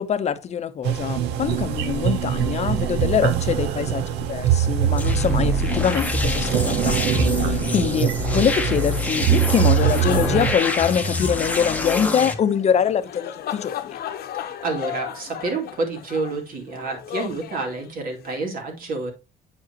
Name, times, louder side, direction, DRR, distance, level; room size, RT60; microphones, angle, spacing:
voice 1, 0.0-14.0, left 8 dB, 40° left, 0.8 m, -24 dB
sound 1, 0.8-10.6, right 10 dB, 85° right, 0.9 m, -23 dB
sound 2, 5.0-12.3, left 2 dB, 10° left, 1.0 m, -26 dB
sound 3, 9.3-18.3, left 11 dB, 65° left, 0.9 m, -35 dB
voice 2, 14.3-19.1, right 3 dB, 55° right, 2.6 m, -29 dB
8.6 x 4.9 x 2.9 m
cardioid pair, 110°, 17 cm